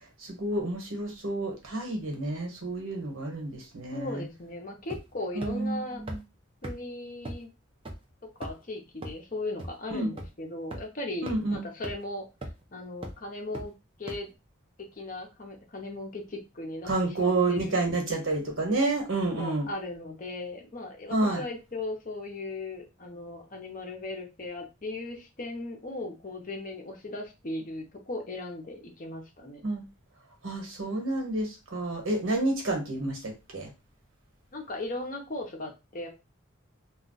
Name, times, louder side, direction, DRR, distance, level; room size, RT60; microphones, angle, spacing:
voice 1, 0.2-4.2 5.3-6.2 9.9-10.1 11.2-11.6 16.8-19.7 21.1-21.4 29.6-29.8 30.4-33.7, right 2 dB, 80° right, 1.1 m, -29 dB
voice 2, 3.9-6.0 6.6-7.5 8.4-12.2 12.7-13.7 14.0-14.3 14.8-16.9 17.2-17.8 19.3-29.6 34.5-36.1, left 2 dB, 40° left, 0.7 m, -37 dB
sound 1, 4.9-5.2 5.4-5.5 6.1-6.2 6.6-6.7 7.3-7.4 7.9-8.0 8.4-8.6 9.0-9.1 9.6-9.7 10.2-10.3 10.7-10.8 11.3-11.4 11.8-11.9 12.4-12.6 13.0-13.1 13.5-13.6 14.1-14.2, right 1 dB, 25° right, 0.5 m, -36 dB
2.3 x 2.3 x 3.8 m
head